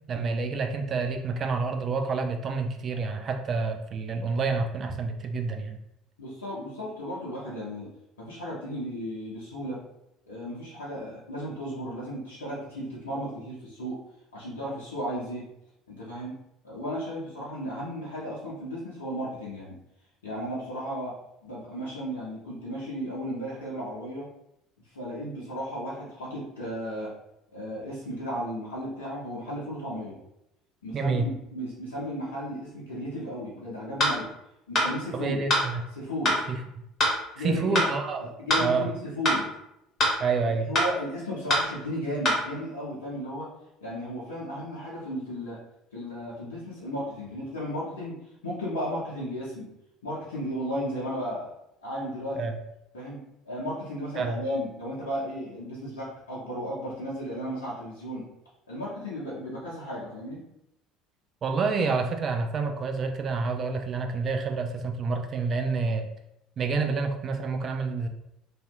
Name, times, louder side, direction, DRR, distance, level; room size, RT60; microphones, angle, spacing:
voice 1, 0.1-5.8 30.9-31.3 35.1-35.8 36.5-36.6 37.4-38.3 38.6-38.9 40.2-40.7 52.4-52.5 54.2-54.4 61.4-66.1 66.6-68.1, right 4 dB, 40° right, 5 dB, 0.4 m, -28 dB
voice 2, 6.2-7.9 8.2-9.8 10.3-14.0 14.3-15.5 15.9-16.3 16.6-19.8 20.2-21.2 21.4-24.3 24.9-27.1 27.5-30.2 30.8-34.3 34.7-35.4 35.9-36.5 37.4-37.8 38.2-39.5 40.6-43.5 43.8-45.6 45.9-48.2 48.4-49.7 50.0-51.5 51.8-52.5 52.9-58.3 58.7-60.4, equal, 80° left, -7 dB, 0.7 m, -34 dB
sound 1, 34.0-34.2 34.7-34.9 35.5-35.6 36.2-36.4 37.0-37.2 37.7-37.9 38.5-38.7 39.2-39.4 40.0-40.2 40.8-40.9 41.5-41.7 42.2-42.4, left 1 dB, 40° left, 1.0 m, -23 dB
2.7 x 2.5 x 2.3 m, 0.83 s
figure-of-eight pair, 60°, 0 cm